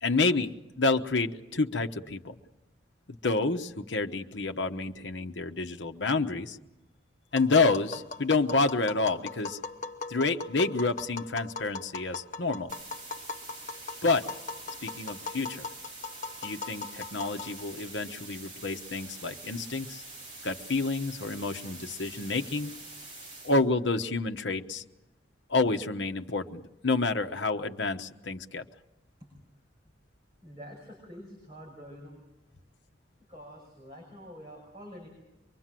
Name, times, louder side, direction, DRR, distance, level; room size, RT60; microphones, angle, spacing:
voice 1, 0.0-2.3 3.1-6.6 7.3-9.6 10.1-12.7 14.0-14.3 14.8-15.7 16.4-20.0 20.4-22.7 23.4-24.8 25.5-28.6, left 3 dB, 75° left, 5 dB, 1.0 m, -29 dB
Tap, 7.3-17.8, left 4 dB, 40° left, 1.0 m, -40 dB
sound 1, 12.7-23.6, right 2 dB, 40° right, 6.0 m, -45 dB
voice 2, 30.4-32.2 33.3-35.1, equal, 25° right, -2 dB, 5.9 m, -47 dB
24.5 x 23.0 x 7.6 m, 0.96 s
head